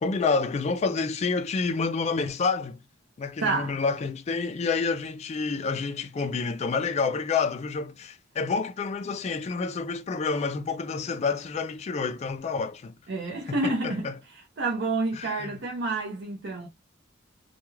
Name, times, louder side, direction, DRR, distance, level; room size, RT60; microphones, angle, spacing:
voice 1, 0.0-2.8 3.2-13.0 13.5-14.1 15.2-15.6, left 4 dB, 35° left, 0.3 m, -28 dB
voice 2, 3.4-3.8 13.1-16.7, right 3 dB, 65° right, 0.6 m, -29 dB
2.3 x 2.2 x 3.1 m
head